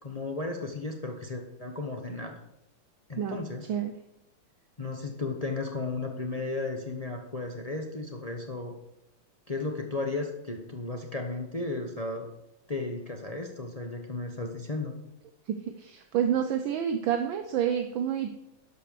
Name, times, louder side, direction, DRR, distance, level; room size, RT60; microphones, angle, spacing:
voice 1, 0.0-2.4 3.1-3.7 4.8-8.8 9.5-12.3 12.7-14.9, left 3 dB, 40° left, 2 dB, 0.5 m, -34 dB
voice 2, 15.5-18.3, right 9 dB, 70° right, 6 dB, 1.4 m, -28 dB
12.0 x 5.4 x 6.7 m, 0.87 s
omnidirectional pair, 2.4 m